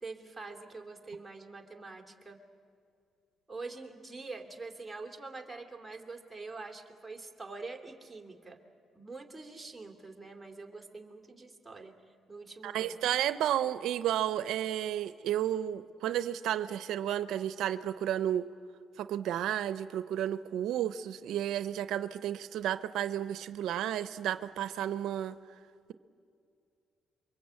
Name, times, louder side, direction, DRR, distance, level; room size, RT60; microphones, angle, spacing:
voice 1, 0.0-2.4 3.5-8.6 8.9-11.9 12.3-13.1, right 3 dB, 10° right, 2 dB, 2.8 m, -45 dB
voice 2, 12.6-18.5 19.0-25.3, right 11 dB, 80° right, 13 dB, 0.6 m, -32 dB
28.0 x 23.5 x 8.3 m, 2.4 s
cardioid pair, 90°, 0 cm